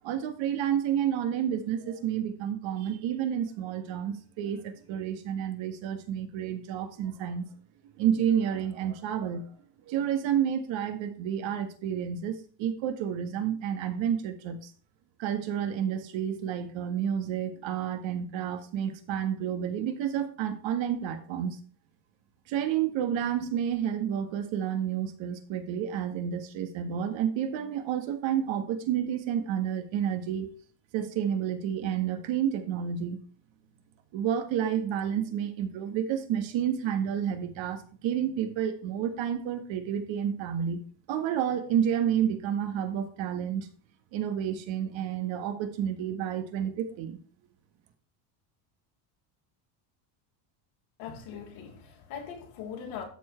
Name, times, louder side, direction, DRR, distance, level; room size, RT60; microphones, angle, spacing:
voice 1, 0.0-7.5 8.0-9.5 9.9-14.7 15.2-21.6 22.5-30.5 30.9-33.2 34.1-40.8 41.1-43.7 44.1-47.2, right 9 dB, 60° right, 1.7 m, -30 dB
voice 2, 51.0-53.0, left 7 dB, 75° left, 3.4 m, -40 dB
13.0 x 4.8 x 4.4 m
supercardioid pair, 105°, 50 cm